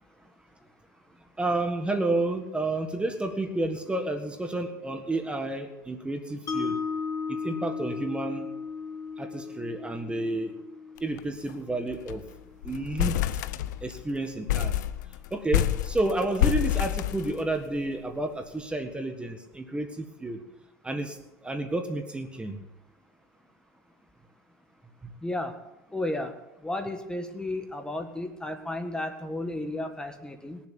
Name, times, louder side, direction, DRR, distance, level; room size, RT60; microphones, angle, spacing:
voice 1, 1.4-6.8 7.3-8.5 9.2-10.5 11.0-12.2 12.6-13.2 13.8-14.7 15.3-20.4 20.8-21.2 21.4-22.6, right 2 dB, 10° right, 6 dB, 1.7 m, -30 dB
Mallet percussion, 6.5-12.6, left 5 dB, 35° left, 2.6 m, -36 dB
sound 1, 11.0-11.2 11.5-11.6 11.9-12.3 12.6-14.0 14.5-17.8, left 12 dB, 80° left, 0.8 m, -28 dB
voice 2, 25.2-25.6 25.9-30.6, left 1 dB, 10° left, 6 dB, 1.7 m, -33 dB
20.5 x 7.3 x 8.7 m, 0.96 s
supercardioid pair, 105°, 10 cm